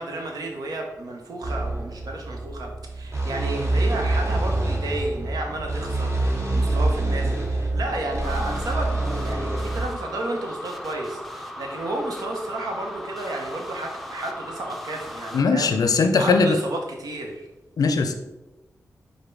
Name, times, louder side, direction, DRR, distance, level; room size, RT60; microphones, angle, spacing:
voice 1, 0.0-17.5, right 2 dB, 90° right, 1 dB, 0.8 m, -32 dB
sound 1, 1.4-9.8, right 2 dB, 50° right, 1.5 m, -26 dB
sound 2, 8.2-15.4, equal, ahead, 0.5 m, -38 dB
voice 2, 15.3-16.6 17.8-18.1, left 4 dB, 80° left, 6 dB, 0.5 m, -19 dB
4.9 x 2.2 x 4.6 m, 1.0 s
cardioid pair, 65°, 6 cm